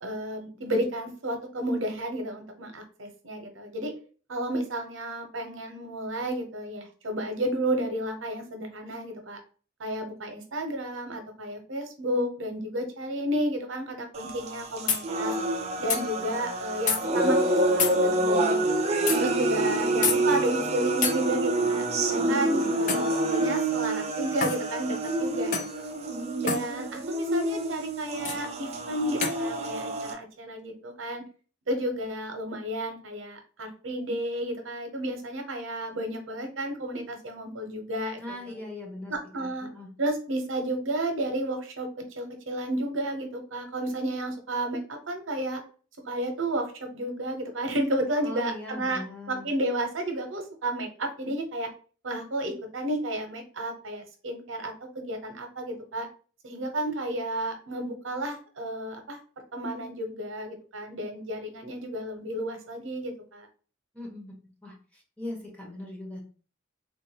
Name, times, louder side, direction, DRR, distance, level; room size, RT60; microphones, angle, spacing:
voice 1, 0.0-3.9 4.3-9.4 9.8-15.3 15.8-18.6 19.2-25.9 26.4-31.2 31.7-38.6 39.1-39.7 40.0-45.6 46.0-49.0 49.3-51.7 52.0-56.1 56.4-59.2 59.5-63.5, right 1 dB, 85° right, 5 dB, 0.8 m, -32 dB
sound 1, 14.1-30.1, right 2 dB, 35° right, 0.5 m, -27 dB
sound 2, 14.4-14.5 14.9-15.0 15.9-16.0 16.9-17.0 17.8-18.0 19.1-19.2 20.0-20.2 21.0-21.2 22.9-23.1 24.4-24.6 25.5-25.7 26.5-26.7 28.2-28.4 29.2-29.4, left 5 dB, 40° left, 0.5 m, -27 dB
voice 2, 22.1-22.8 38.2-39.9 48.2-49.5 63.9-64.3 64.6-66.2, left 1 dB, 5° left, -2 dB, 1.1 m, -40 dB
3.5 x 2.5 x 2.8 m, 0.39 s
head